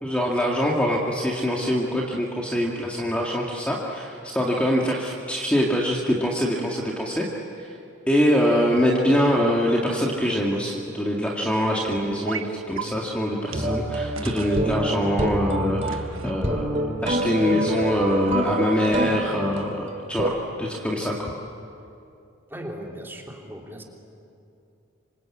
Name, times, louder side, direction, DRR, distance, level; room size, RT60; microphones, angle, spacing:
voice 1, 0.0-7.2 7.6-7.7 8.1-21.3, equal, 5° left, -3 dB, 2.1 m, -24 dB
sound 1, 12.3-12.5 12.8-12.9 13.5-13.6 14.2-14.6 15.9-16.4 17.5-18.2, right 5 dB, 75° right, 1.3 m, -35 dB
sound 2, 13.5-20.3, right 1 dB, 35° right, 2.6 m, -27 dB
voice 2, 22.5-23.8, equal, 10° right, 0 dB, 3.1 m, -37 dB
27.0 x 26.0 x 8.6 m, 2.6 s
head